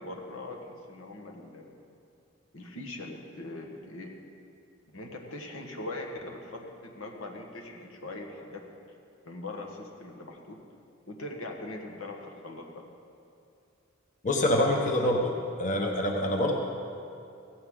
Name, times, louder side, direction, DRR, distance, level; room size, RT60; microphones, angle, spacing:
voice 1, 0.0-1.7 2.5-4.1 4.9-8.7 9.2-10.6 11.1-12.8 14.6-14.7 15.0-15.1 15.4-15.9, left 2 dB, 80° left, 1 dB, 1.7 m, -41 dB
voice 2, 14.2-15.3 15.6-16.5, left 1 dB, 35° left, 1 dB, 1.1 m, -25 dB
16.0 x 15.5 x 4.0 m, 2.5 s
head